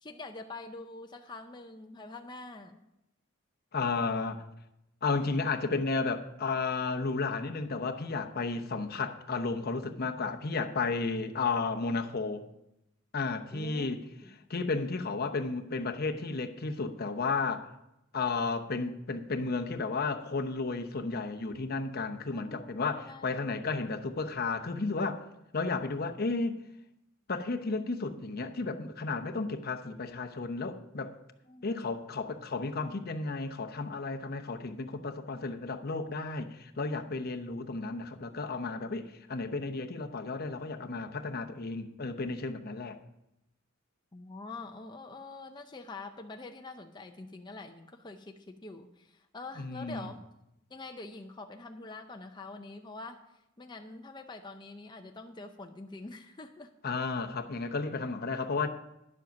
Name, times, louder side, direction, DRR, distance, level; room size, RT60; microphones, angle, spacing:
voice 1, 0.0-2.8 13.5-13.9 14.2-14.4 22.3-23.4 31.5-32.0 44.1-50.2 50.7-53.2 53.6-56.7, left 3 dB, 20° left, 4 dB, 0.6 m, -45 dB
voice 2, 3.7-4.4 5.0-12.4 13.1-14.0 14.5-17.7 18.1-25.2 25.5-26.6 27.3-31.1 31.6-43.0 49.6-50.1 56.8-58.7, left 4 dB, 50° left, 6 dB, 0.9 m, -33 dB
10.5 x 7.6 x 5.9 m, 0.85 s
head